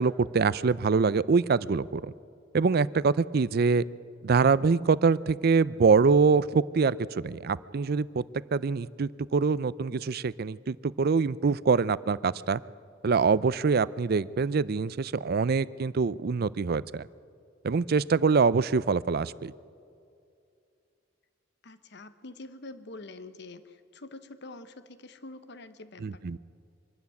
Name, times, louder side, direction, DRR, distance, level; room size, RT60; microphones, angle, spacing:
voice 1, 0.0-2.1 2.5-3.8 4.2-8.2 8.5-12.6 13.0-17.0 17.6-19.5 26.0-26.4, right 5 dB, 55° right, 19 dB, 0.5 m, -24 dB
voice 2, 21.6-26.4, left 2 dB, 65° left, 12 dB, 1.0 m, -46 dB
24.0 x 13.0 x 9.5 m, 2.5 s
head